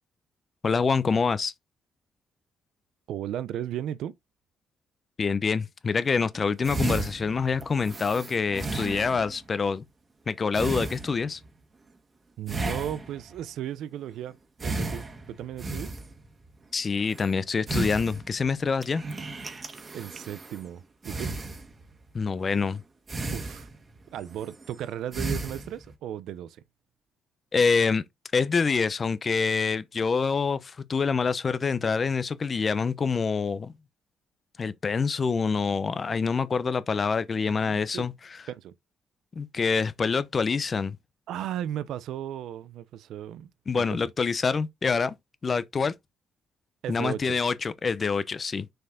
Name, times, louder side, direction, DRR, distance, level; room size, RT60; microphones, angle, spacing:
voice 1, 0.6-1.5 5.2-9.8 10.3-11.4 16.7-19.0 22.1-22.8 27.5-28.0 28.3-33.7 34.6-38.4 39.4-41.0 43.7-45.1 45.4-45.9 46.9-48.7, left 5 dB, 40° left, 0.8 m, -26 dB
voice 2, 3.1-4.1 12.4-14.4 14.6-15.9 19.9-21.3 23.3-23.7 24.1-26.6 38.5-38.7 41.3-43.5 43.7-44.0 46.8-47.4, right 11 dB, 80° right, 0.6 m, -35 dB
sound 1, 6.3-6.4 6.6-9.5 10.5-11.5 12.5-13.4 14.6-16.3 17.0-17.3 17.7-18.5 18.8-20.7 21.0-22.0 22.5-22.7 23.1-24.0 24.3-24.7 25.1-25.9, right 2 dB, 30° right, 1.7 m, -34 dB
6.5 x 4.6 x 3.9 m
cardioid pair, 90°, 0 cm